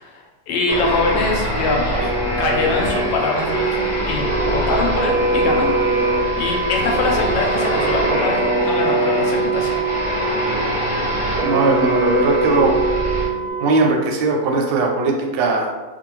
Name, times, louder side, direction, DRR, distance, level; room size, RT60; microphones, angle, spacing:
voice 1, 0.0-5.7 6.4-9.7, left 3 dB, 80° left, 0 dB, 1.3 m, -23 dB
sound 1, 0.7-13.2, right 1 dB, ahead, 0.8 m, -22 dB
sound 2, 3.3-13.5, right 5 dB, 55° right, 0.8 m, -27 dB
Wind instrument woodwind instrument, 3.5-13.9, right 3 dB, 65° left, 0.8 m, -28 dB
voice 2, 11.4-12.8 13.6-15.7, right 3 dB, 80° right, 1 dB, 1.2 m, -19 dB
3.0 x 2.2 x 2.9 m, 1.2 s
omnidirectional pair, 2.0 m